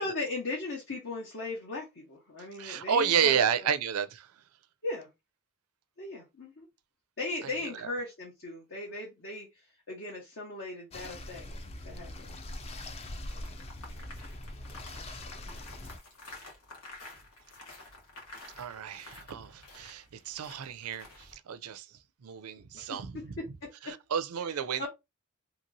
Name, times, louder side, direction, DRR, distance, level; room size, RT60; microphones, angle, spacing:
voice 1, 0.0-3.4 4.8-5.1 6.0-6.7 7.2-11.5 11.8-12.3 22.7-23.2 23.6-24.0 24.8-24.9, left 2 dB, 60° left, 1.1 m, -38 dB
voice 2, 2.6-4.3 7.4-7.5 7.8-7.9 18.5-23.3 23.8-24.9, right 8 dB, 80° right, 0.4 m, -31 dB
sound 1, 10.9-16.0, left 1 dB, 30° left, 0.4 m, -42 dB
sound 2, 13.3-21.3, left 2 dB, 90° left, 1.4 m, -50 dB
2.9 x 2.9 x 2.6 m
head